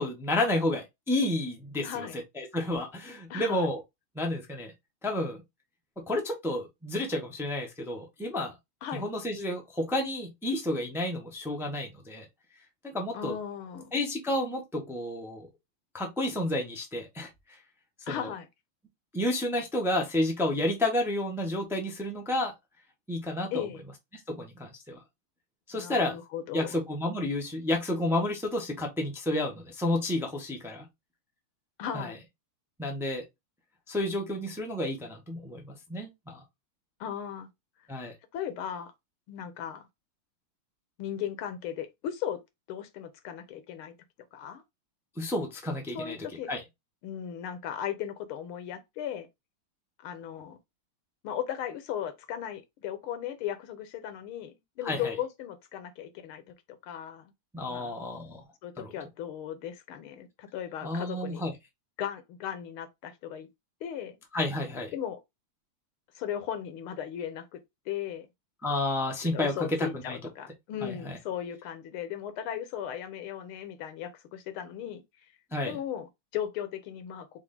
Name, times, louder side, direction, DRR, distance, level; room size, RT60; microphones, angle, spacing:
voice 1, 0.0-2.1 2.4-3.8 4.1-4.7 5.0-5.4 6.0-8.5 8.9-12.3 12.9-13.4 13.9-15.5 15.9-17.3 18.1-18.3 19.1-22.5 23.1-23.6 24.3-25.0 25.7-26.2 26.5-30.9 31.9-32.1 32.8-33.2 33.9-36.4 37.9-38.1 45.2-46.2 46.5-46.6 54.8-55.1 57.5-58.4 58.8-58.9 60.8-61.5 64.3-64.9 68.6-70.2 70.8-71.2 75.5-75.8, left 1 dB, 5° right, 0.4 m, -31 dB
voice 2, 1.8-2.2 3.3-3.7 8.8-9.1 13.1-13.9 18.1-18.5 23.5-23.8 25.7-26.8 31.8-32.2 37.0-37.5 38.3-38.9 39.3-39.9 41.0-42.4 42.7-43.9 44.3-44.6 45.9-46.5 47.0-49.3 50.0-50.6 51.2-57.3 57.7-57.9 58.6-61.4 62.0-63.5 63.8-64.2 64.9-65.2 66.1-67.6 67.9-68.3 69.2-75.0 75.6-77.4, left 9 dB, 80° left, 1.7 m, -37 dB
4.7 x 2.7 x 3.7 m
omnidirectional pair, 2.3 m